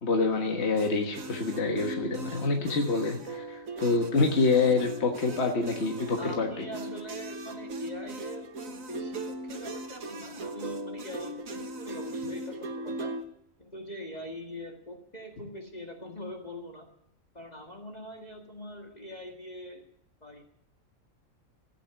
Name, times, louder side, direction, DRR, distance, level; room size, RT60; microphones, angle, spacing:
voice 1, 0.0-6.7, left 3 dB, 50° left, 2 dB, 1.7 m, -27 dB
sound 1, 0.8-13.2, right 1 dB, 75° right, 1.7 m, -38 dB
voice 2, 6.2-13.1 13.6-16.9 17.3-19.8 20.2-20.4, left 1 dB, 30° left, 1 dB, 1.9 m, -43 dB
15.0 x 9.1 x 9.3 m, 0.72 s
omnidirectional pair, 1.4 m